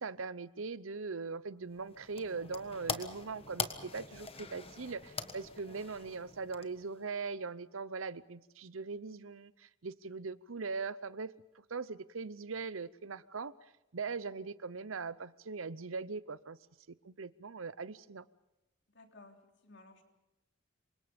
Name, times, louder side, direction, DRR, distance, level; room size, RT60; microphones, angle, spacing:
voice 1, 0.0-11.3 11.7-13.5 13.9-16.6 17.0-18.2, right 4 dB, 80° right, 0.8 m, -40 dB
sound 1, 1.7-7.1, left 5 dB, 30° left, 1.4 m, -43 dB
voice 2, 18.9-20.0, left 2 dB, 60° left, 3.3 m, -57 dB
28.0 x 24.5 x 5.3 m
head